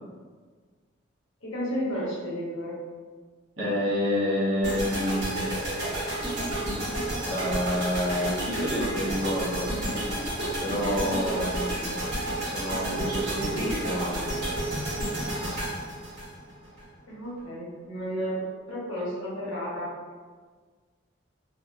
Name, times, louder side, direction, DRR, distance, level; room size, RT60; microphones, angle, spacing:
voice 1, 1.4-2.8 17.1-19.9, equal, 90° left, -7 dB, 1.1 m, -32 dB
voice 2, 3.6-5.5 7.3-9.7 10.6-11.7 12.4-14.4, left 1 dB, 75° right, -7 dB, 1.0 m, -28 dB
sound 1, 4.6-16.8, right 1 dB, 55° right, 1.3 m, -31 dB
2.9 x 2.8 x 2.4 m, 1.5 s
head